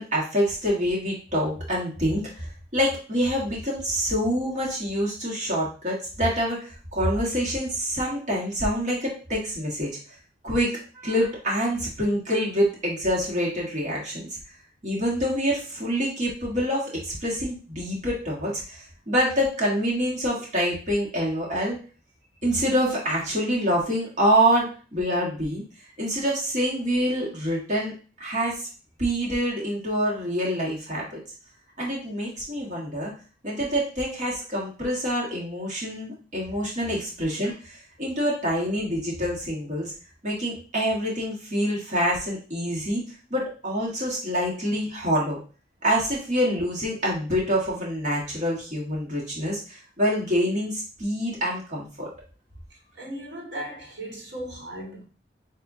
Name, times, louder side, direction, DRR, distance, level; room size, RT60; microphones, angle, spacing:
voice 1, 0.0-9.9 10.4-14.4 14.8-21.8 22.4-25.6 26.0-28.7 29.0-31.2 31.8-33.1 33.4-39.9 40.2-43.0 43.3-45.4 45.8-52.1, equal, 45° right, 1.5 m, -26 dB
voice 2, 53.0-55.0, right 1 dB, 85° right, 1.8 m, -37 dB
7.2 x 2.7 x 2.7 m
head